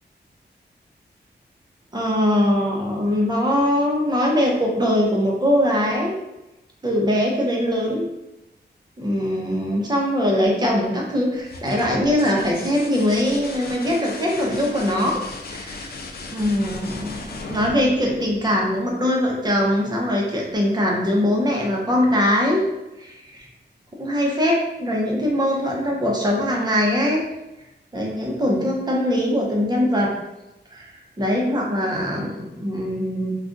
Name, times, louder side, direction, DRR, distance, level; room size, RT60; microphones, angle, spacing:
voice 1, 1.9-6.2 6.8-8.1 9.0-15.2 15.5-15.9 16.3-17.2 17.5-22.7 23.0-23.4 24.0-27.2 27.9-30.1 30.7-33.4, left 1 dB, 20° right, -2 dB, 0.7 m, -21 dB
sound 1, 11.3-18.9 20.7-21.3, left 3 dB, 60° left, 0.4 m, -37 dB
2.4 x 2.3 x 3.8 m, 0.96 s
wide cardioid pair, 110°, 18 cm